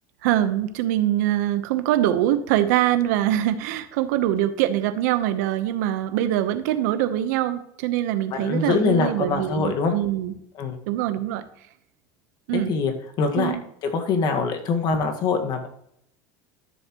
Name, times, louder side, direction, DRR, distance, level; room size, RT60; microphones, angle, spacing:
voice 1, 0.2-10.4 10.9-11.4 12.5-12.8 13.4-13.6, right 12 dB, 75° right, 10 dB, 1.0 m, -23 dB
voice 2, 8.3-9.9 10.6-10.8 12.5-13.5 13.9-15.7, left 5 dB, 50° left, 5 dB, 1.7 m, -24 dB
13.0 x 7.2 x 3.1 m, 0.73 s
supercardioid pair, 100°, 9 cm